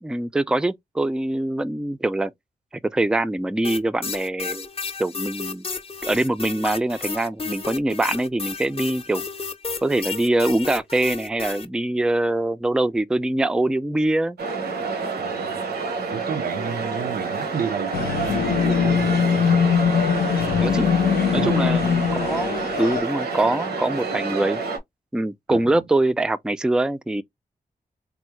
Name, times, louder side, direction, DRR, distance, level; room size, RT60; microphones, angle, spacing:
voice 1, 0.0-2.3 2.9-4.7 5.0-5.7 6.0-9.3 9.8-14.4 20.6-20.8 21.3-24.6 25.1-27.2, right 2 dB, 5° right, 0.4 m, -23 dB
sound 1, 3.6-11.7, left 4 dB, 35° left, 0.7 m, -32 dB
sound 2, 14.4-24.8, right 4 dB, 85° right, 0.9 m, -28 dB
voice 2, 15.2-15.6 16.1-20.0 21.3-21.7 25.5-25.8, right 7 dB, 65° right, 0.5 m, -32 dB
sound 3, 17.9-23.0, left 8 dB, 85° left, 0.4 m, -21 dB
3.5 x 2.0 x 3.1 m
cardioid pair, 50°, 16 cm